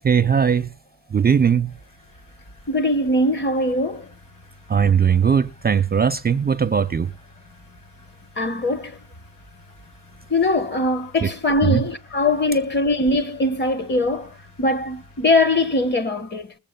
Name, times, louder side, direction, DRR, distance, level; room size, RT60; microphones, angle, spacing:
voice 1, 0.0-0.7 1.1-1.8 4.7-7.1 11.2-11.3 11.6-11.8, right 7 dB, 30° right, 0.4 m, -19 dB
sound 1, 1.6-15.9, left 2 dB, 65° left, 6.9 m, -50 dB
voice 2, 2.7-4.1 8.4-9.0 10.3-16.5, left 2 dB, 30° left, 1.0 m, -21 dB
21.0 x 7.2 x 2.2 m
wide cardioid pair, 110°, 34 cm